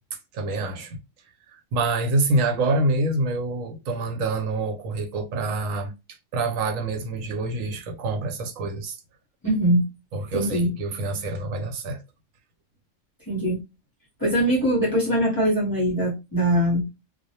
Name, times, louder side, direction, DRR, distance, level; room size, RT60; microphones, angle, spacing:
voice 1, 0.1-1.0 1.5-9.0 10.1-12.0, right 2 dB, 80° right, 1.0 m, -26 dB
voice 2, 9.4-9.8 10.3-10.7 13.3-13.6 14.2-16.9, equal, 20° left, 0.7 m, -22 dB
2.3 x 2.0 x 2.7 m
omnidirectional pair, 1.3 m